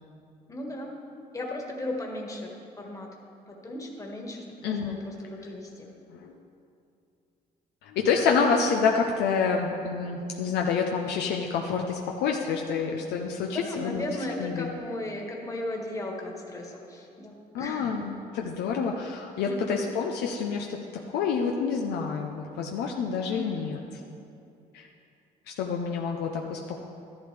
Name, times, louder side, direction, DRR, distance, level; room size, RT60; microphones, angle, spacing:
voice 1, 0.5-0.9 1.3-2.5 2.8-3.1 3.5-5.9 13.4-17.9 19.4-19.8 23.3-23.6, left 1 dB, 20° left, 0 dB, 1.6 m, -36 dB
voice 2, 4.6-5.0 6.1-6.3 7.8-14.0 14.4-14.7 17.5-20.8 21.1-23.8 24.7-24.9 25.6-26.8, left 5 dB, 80° left, 1 dB, 0.8 m, -28 dB
12.5 x 11.0 x 3.4 m, 2.6 s
cardioid pair, 110°, 17 cm